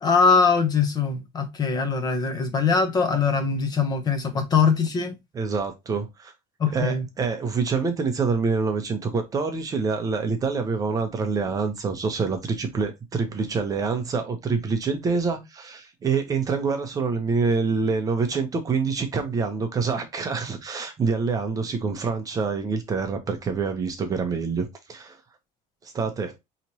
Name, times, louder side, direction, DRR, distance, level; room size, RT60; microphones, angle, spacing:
voice 1, 0.0-5.2 6.6-7.0, left 5 dB, 25° left, 0.7 m, -22 dB
voice 2, 5.3-6.3 6.7-25.2 25.8-26.4, right 5 dB, 20° right, 0.7 m, -26 dB
4.9 x 3.0 x 2.8 m
cardioid pair, 170°, 16 cm